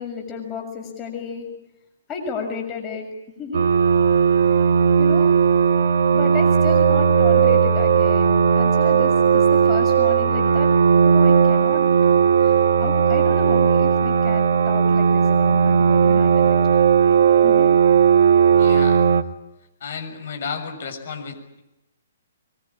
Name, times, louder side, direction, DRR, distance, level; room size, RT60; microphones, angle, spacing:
voice 1, 0.0-1.5 2.1-3.1 3.4-3.7 5.0-5.5 6.1-10.7 11.0-11.9 12.4-12.5 12.8-16.6 17.4-17.7, left 4 dB, 20° left, 2 dB, 6.9 m, -32 dB
sound 1, 3.5-19.2, right 6 dB, 60° right, 1.5 m, -16 dB
voice 2, 18.5-19.1 19.8-21.6, left 5 dB, 55° left, 5 dB, 6.9 m, -32 dB
23.5 x 23.0 x 8.9 m, 0.91 s
figure-of-eight pair, 125°, 0 cm